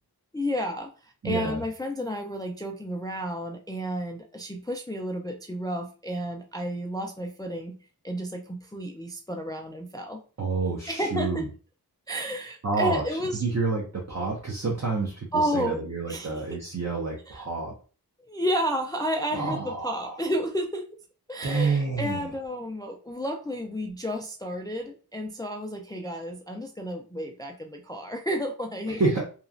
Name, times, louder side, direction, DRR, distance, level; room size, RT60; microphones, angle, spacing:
voice 1, 0.3-7.8 8.0-10.2 10.9-11.5 12.1-13.4 15.3-15.8 16.1-16.6 17.3-17.4 18.2-20.9 21.3-29.0, equal, 10° left, 3 dB, 0.3 m, -31 dB
voice 2, 1.2-1.6 10.4-11.4 12.6-13.0 13.4-17.7 19.3-20.2 21.4-22.2 28.9-29.2, right 4 dB, 40° right, -3 dB, 0.7 m, -28 dB
3.0 x 2.3 x 2.4 m, 0.37 s
wide cardioid pair, 50°, 39 cm